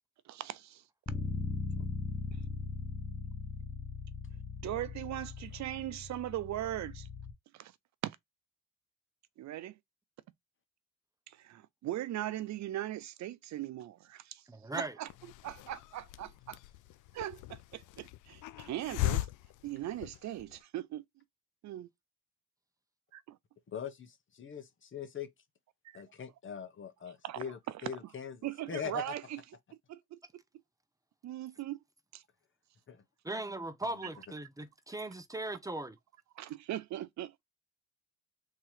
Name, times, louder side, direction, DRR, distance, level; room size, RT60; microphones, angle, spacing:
voice 1, 0.3-0.8 4.6-7.1 7.5-7.7 8.0-8.2 9.4-9.8 11.3-14.4 14.7-15.1 15.4-16.6 17.1-19.3 19.6-21.0 21.6-21.9 23.1-23.4 25.9-26.0 27.2-27.4 28.4-29.4 29.9-30.4 31.2-31.8 32.1-32.2 36.4-37.3, right 13 dB, 65° right, 0.5 m, -39 dB
Bass guitar, 1.1-7.3, left 4 dB, 20° left, 0.8 m, -39 dB
voice 2, 14.5-14.9 33.2-36.0, right 2 dB, 10° right, 0.7 m, -39 dB
Hiss, 15.1-20.6, left 17 dB, 85° left, 0.5 m, -39 dB
voice 3, 23.7-25.3 25.9-29.2 32.9-33.0 33.9-34.1, left 8 dB, 40° left, 1.0 m, -42 dB
3.7 x 2.9 x 4.7 m
cardioid pair, 90°, 30 cm